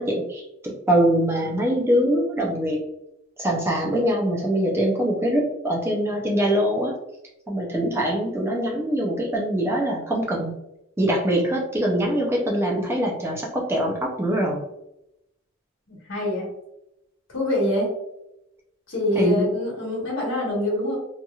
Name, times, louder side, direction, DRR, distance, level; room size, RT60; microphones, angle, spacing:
voice 1, 0.0-2.8 3.4-6.9 7.5-10.5 11.0-14.6 19.1-19.5, right 1 dB, 15° right, -1 dB, 0.4 m, -23 dB
voice 2, 15.9-16.5 17.3-17.9 18.9-21.0, left 1 dB, 65° left, -4 dB, 1.3 m, -25 dB
2.9 x 2.7 x 2.3 m, 0.85 s
head